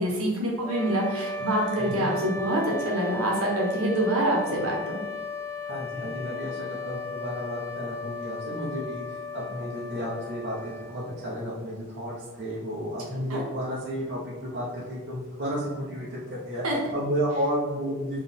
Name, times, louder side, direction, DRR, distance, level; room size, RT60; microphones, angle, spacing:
voice 1, 0.0-5.0 13.3-13.4 16.6-16.8, right 1 dB, 65° right, -2 dB, 1.2 m, -26 dB
sound 1, 0.6-11.6, left 3 dB, 25° right, 0.5 m, -36 dB
voice 2, 5.6-16.6 16.9-18.2, equal, 50° right, -7 dB, 0.9 m, -32 dB
4.1 x 3.1 x 3.6 m, 1.3 s
head